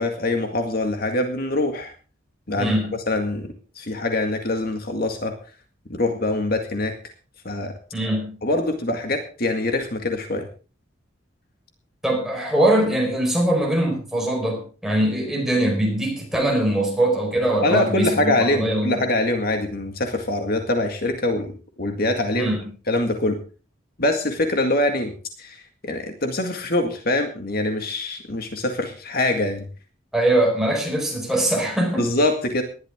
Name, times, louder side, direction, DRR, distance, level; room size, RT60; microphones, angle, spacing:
voice 1, 0.0-1.9 2.5-2.7 3.1-5.4 5.9-6.9 7.5-7.7 8.4-10.5 17.6-21.5 21.8-22.5 22.9-23.4 24.0-25.1 25.4-29.7 32.0-32.6, left 2 dB, 50° left, 5 dB, 1.9 m, -24 dB
voice 2, 2.6-2.9 7.9-8.3 12.0-19.0 22.4-22.6 30.1-32.1, right 1 dB, ahead, 0 dB, 4.8 m, -22 dB
19.0 x 12.0 x 3.7 m, 0.37 s
head